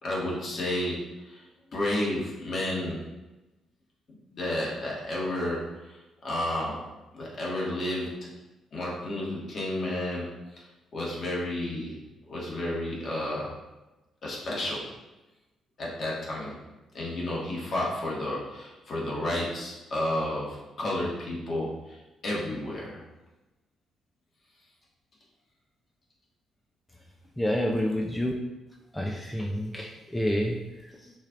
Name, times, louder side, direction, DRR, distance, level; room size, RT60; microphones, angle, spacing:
voice 1, 0.0-1.0 1.2-1.4 1.7-3.0 4.3-6.0 6.2-6.8 7.1-8.3 8.7-10.3 10.5-10.6 10.9-12.0 12.3-13.5 14.2-14.8 15.8-16.6 16.9-22.0 22.2-23.0, left 1 dB, 50° left, -4 dB, 1.6 m, -31 dB
voice 2, 27.4-28.3 28.9-31.1, equal, 5° left, 0 dB, 0.5 m, -29 dB
6.3 x 3.3 x 2.5 m, 1.1 s
cardioid pair, 90°, 0 cm